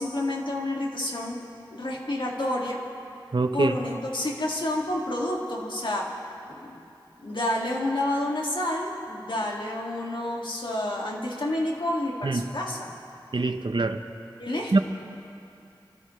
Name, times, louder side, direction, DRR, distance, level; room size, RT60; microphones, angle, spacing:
voice 1, 0.0-1.4 1.7-2.8 3.5-6.1 6.5-6.8 7.2-12.9 14.4-14.8, left 1 dB, 70° left, -2 dB, 2.1 m, -29 dB
voice 2, 3.3-3.7 12.2-12.5 13.3-14.0 14.7-14.8, right 3 dB, 65° right, 8 dB, 0.8 m, -24 dB
26.5 x 13.5 x 3.2 m, 2.6 s
wide cardioid pair, 55°, 9 cm